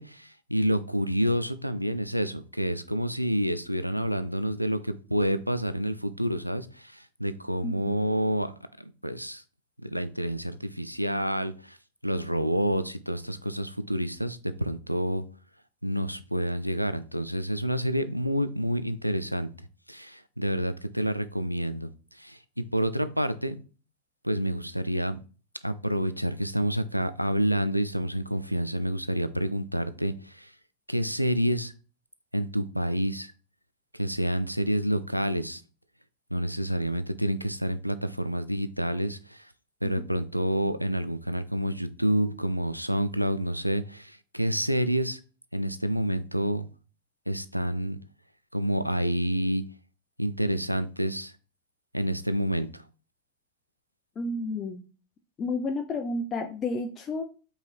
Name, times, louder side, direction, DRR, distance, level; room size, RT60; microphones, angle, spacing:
voice 1, 0.0-8.5 9.0-9.4 9.8-11.8 12.0-15.2 15.8-19.5 19.9-21.9 22.2-22.4 22.7-23.6 24.2-25.2 25.6-30.5 30.9-31.7 32.3-33.3 33.9-35.6 36.3-39.4 39.8-45.2 45.5-46.6 47.3-48.0 48.5-49.6 50.2-51.3 51.9-52.8, equal, 90° right, 11 dB, 0.3 m, -28 dB
voice 2, 7.6-8.0 54.2-54.8 55.4-57.2, left 2 dB, 25° left, 5 dB, 0.5 m, -31 dB
5.3 x 3.1 x 2.4 m, 0.36 s
figure-of-eight pair, 90°, 0 cm